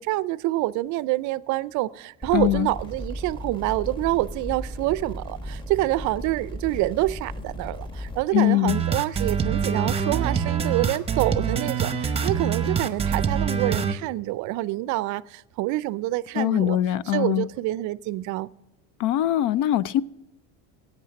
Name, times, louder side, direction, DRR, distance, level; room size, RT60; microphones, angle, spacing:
voice 1, 0.0-16.8 17.1-18.5, right 17 dB, 55° right, 0.5 m, -27 dB
sound 1, 2.2-8.2, equal, 15° left, 1.3 m, -36 dB
voice 2, 2.3-2.7 8.3-8.8 16.4-17.5 19.0-20.0, left 13 dB, 55° left, 0.5 m, -22 dB
sound 2, 8.7-13.9, right 6 dB, 15° right, 0.8 m, -25 dB
16.0 x 8.6 x 6.4 m
supercardioid pair, 125°, 36 cm